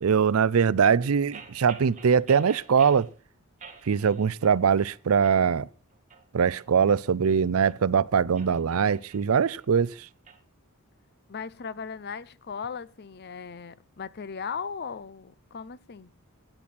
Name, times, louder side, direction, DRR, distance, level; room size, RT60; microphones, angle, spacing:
voice 1, 0.0-3.1 3.8-5.7 6.3-10.1, right 6 dB, 75° right, 0.5 m, -22 dB
sound 1, 1.3-3.1 3.6-4.6 4.9-5.4 5.9-7.8 8.2-10.4, right 6 dB, 35° right, 1.9 m, -48 dB
voice 2, 11.3-16.1, left 6 dB, 50° left, 0.6 m, -37 dB
17.0 x 8.9 x 4.2 m
head